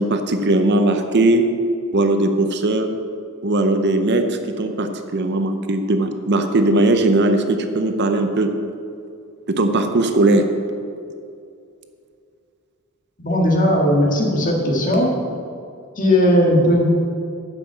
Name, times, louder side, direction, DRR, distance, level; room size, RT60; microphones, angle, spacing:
voice 1, 0.0-1.5 1.9-2.9 3.4-8.5 9.5-10.5, right 2 dB, 50° right, 7 dB, 0.7 m, -18 dB
voice 2, 13.2-15.2 16.0-16.8, equal, 40° left, -1 dB, 1.8 m, -17 dB
9.2 x 5.9 x 7.4 m, 2.4 s
head